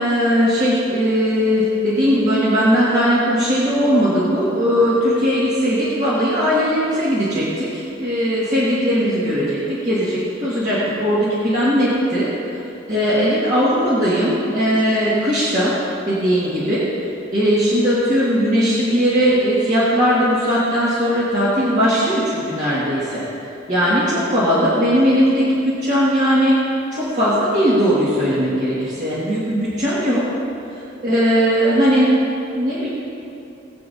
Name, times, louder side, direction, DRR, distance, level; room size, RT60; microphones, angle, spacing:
voice 1, 0.0-12.3 12.9-15.8 16.1-16.8 17.3-23.2 23.7-26.6 26.9-30.3 31.0-32.2 32.5-32.9, equal, 40° right, -10 dB, 2.0 m, -18 dB
19.5 x 8.4 x 2.8 m, 2.8 s
head